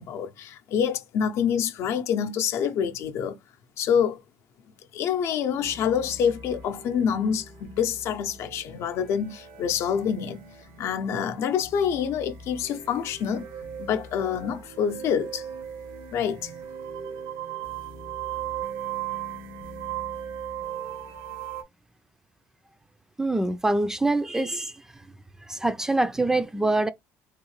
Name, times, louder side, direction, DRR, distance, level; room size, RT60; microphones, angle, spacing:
voice 1, 0.0-3.4 3.8-4.2 4.9-10.4 10.8-13.5 13.8-15.4 16.1-16.5, left 8 dB, 60° left, 0.7 m, -26 dB
sound 1, 5.5-21.6, right 9 dB, 85° right, 1.1 m, -38 dB
voice 2, 23.2-24.7 25.5-26.9, right 2 dB, 10° right, 0.4 m, -24 dB
3.6 x 2.8 x 3.1 m
supercardioid pair, 100°, 5 cm